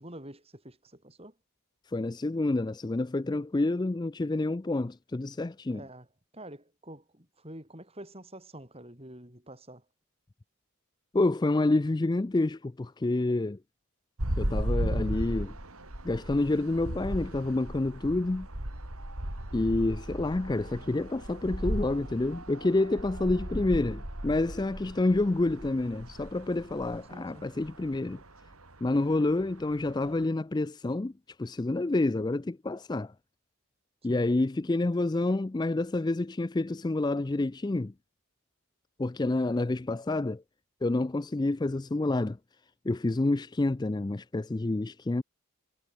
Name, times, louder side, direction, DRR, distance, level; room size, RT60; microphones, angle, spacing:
voice 1, 0.0-1.4 5.7-6.1 6.3-9.8 27.1-27.5 34.1-34.3, right 1 dB, 25° right, 6.7 m, -47 dB
voice 2, 1.9-5.8 11.1-13.6 14.4-15.6 16.0-18.5 19.5-28.2 28.8-31.1 31.4-33.1 34.0-37.9 39.0-40.4 40.8-42.4 42.9-45.2, left 2 dB, 20° left, 0.4 m, -28 dB
sound 1, 14.2-30.2, right 1 dB, 80° right, 4.3 m, -36 dB
head